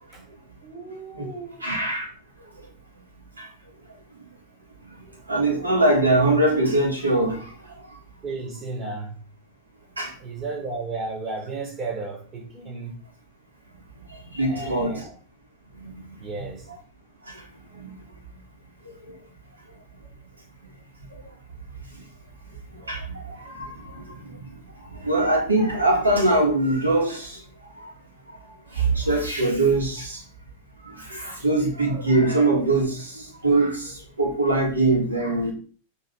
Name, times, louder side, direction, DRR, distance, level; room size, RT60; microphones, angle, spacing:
voice 1, 0.6-1.6 5.0-5.2 8.2-9.2 10.2-13.0 14.4-15.1 16.1-16.7, right 3 dB, 25° right, 3.7 m, -34 dB
voice 2, 1.6-2.1 3.4-3.5 5.3-7.4 10.0-10.1 14.3-15.0 15.8-15.9 17.8-17.9 22.9-24.3 24.9-27.4 27.8-27.9 28.7-30.2 31.0-35.5, right 2 dB, 80° right, 3.4 m, -22 dB
6.6 x 5.2 x 5.1 m
figure-of-eight pair, 90°, 0 cm